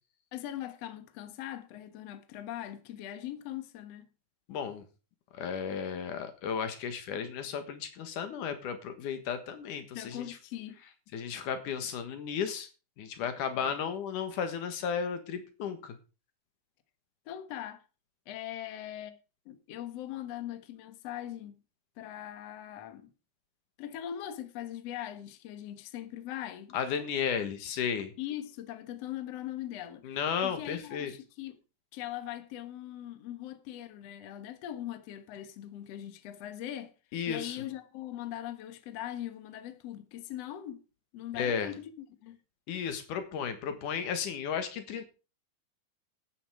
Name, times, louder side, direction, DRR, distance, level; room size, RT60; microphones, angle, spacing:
voice 1, 0.3-4.1 9.9-10.8 13.6-13.8 17.3-17.8 18.3-19.2 19.5-21.6 22.0-23.1 23.8-27.1 28.2-30.2 30.4-31.6 31.9-36.9 37.3-40.8 41.1-41.8 42.2-42.4, left 12 dB, 60° left, 2.2 m, -41 dB
voice 2, 4.5-4.8 5.4-10.2 11.1-12.7 13.0-15.9 26.7-28.1 30.0-31.1 37.1-37.6 41.3-41.7 42.7-45.1, left 7 dB, 85° left, 3.1 m, -34 dB
12.0 x 9.4 x 5.0 m
omnidirectional pair, 3.5 m